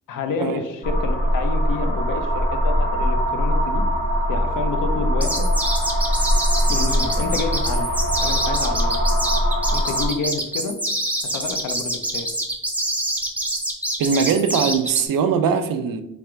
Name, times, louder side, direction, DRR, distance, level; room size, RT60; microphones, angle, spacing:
voice 1, 0.1-3.9 4.3-5.5 6.7-7.9 8.2-9.0 9.7-10.8 11.2-12.3, left 4 dB, 75° left, 7 dB, 0.6 m, -29 dB
sound 1, 0.8-10.1, equal, 40° left, 1.0 m, -21 dB
sound 2, 5.2-15.1, right 1 dB, 5° right, 0.5 m, -26 dB
voice 2, 14.0-16.0, right 6 dB, 80° right, 8 dB, 0.5 m, -21 dB
3.3 x 2.4 x 4.4 m, 0.85 s
wide cardioid pair, 145°, 33 cm